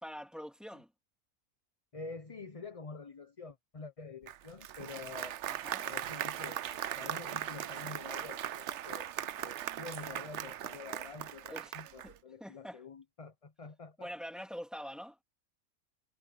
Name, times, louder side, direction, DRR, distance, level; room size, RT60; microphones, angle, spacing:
voice 1, 0.0-0.9 5.5-5.9 11.5-11.8 12.0-12.1 12.4-12.8 14.0-15.2, equal, ahead, 3.5 m, -44 dB
voice 2, 1.9-5.4 5.8-9.1 9.4-14.1, left 4 dB, 30° left, 0.9 m, -47 dB
Applause, 4.3-12.2, right 11 dB, 60° right, 0.8 m, -39 dB
omnidirectional pair, 1.6 m